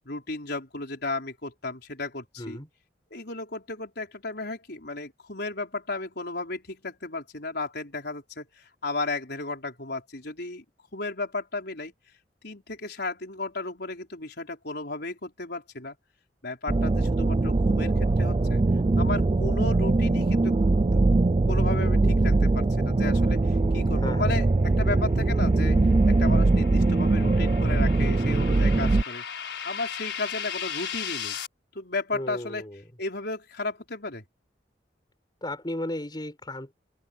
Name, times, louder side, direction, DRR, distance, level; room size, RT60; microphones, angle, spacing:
voice 1, 0.0-2.6 3.1-10.6 10.9-11.9 12.4-16.0 16.4-18.6 19.0-20.5 20.9-21.0 21.5-25.8 26.1-29.2 29.6-31.4 31.7-32.7 33.0-34.2, left 3 dB, 60° left, 5.0 m, -34 dB
voice 2, 2.4-2.7 23.9-24.4 32.1-32.8 35.4-36.7, left 1 dB, 25° left, 4.7 m, -35 dB
sound 1, 16.7-29.0, right 2 dB, 30° right, 0.4 m, -22 dB
sound 2, 24.6-31.5, left 8 dB, 85° left, 4.6 m, -37 dB
open air
head